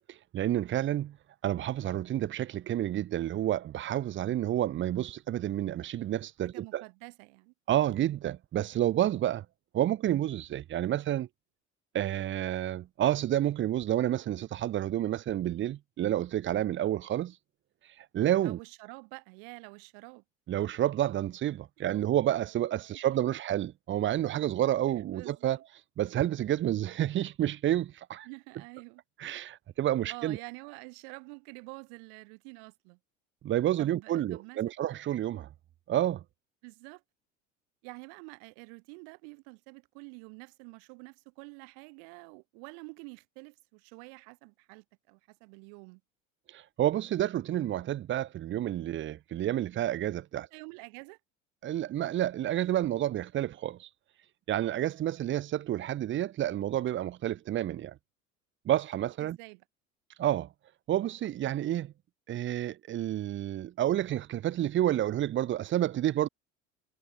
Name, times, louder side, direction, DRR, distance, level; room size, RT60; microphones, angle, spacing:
voice 1, 0.1-1.2 1.4-6.8 7.7-9.4 9.7-11.3 11.9-17.3 18.1-18.6 20.5-25.6 26.0-28.3 29.2-30.4 33.4-35.5 35.9-36.2 46.5-50.5 51.6-53.9 54.5-57.9 58.7-59.4 60.2-60.5 60.9-61.9 62.3-66.3, right 12 dB, 30° right, 0.8 m, -29 dB
voice 2, 6.4-7.5 18.4-20.2 22.9-23.0 25.0-25.6 28.2-29.0 30.1-33.0 33.8-34.6 36.6-37.0 37.8-46.0 50.5-51.2 59.2-59.6, right 40 dB or more, 55° right, 1.2 m, -48 dB
figure-of-eight pair, 70°, 39 cm